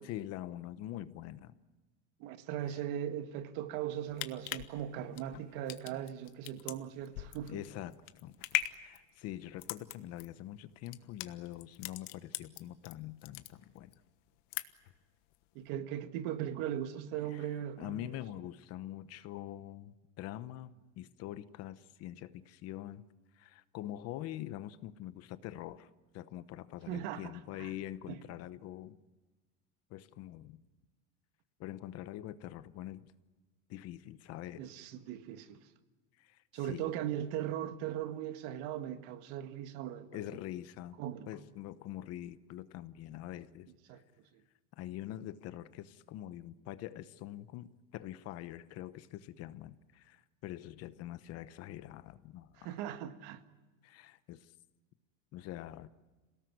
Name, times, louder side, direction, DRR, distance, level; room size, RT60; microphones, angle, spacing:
voice 1, 0.0-1.5 2.7-2.8 7.5-8.3 8.8-13.9 17.3-17.5 17.8-23.0 23.4-29.0 29.9-30.6 31.6-33.1 33.7-34.7 36.2-37.0 40.1-41.0 41.3-43.7 44.7-47.7 47.9-52.7 53.8-54.5 55.3-55.9, left 13 dB, 40° left, 0.9 m, -44 dB
voice 2, 2.2-7.6 15.6-18.1 26.9-27.7 28.1-28.2 34.6-35.6 36.5-40.2 41.0-41.3 43.9-44.0 52.6-53.4, right 11 dB, 60° right, 1.8 m, -39 dB
sound 1, 3.9-12.9 13.2-14.0 14.3-15.0 15.3-15.4, left 17 dB, 85° left, 1.4 m, -40 dB
27.5 x 18.0 x 9.4 m
cardioid pair, 180°, 36 cm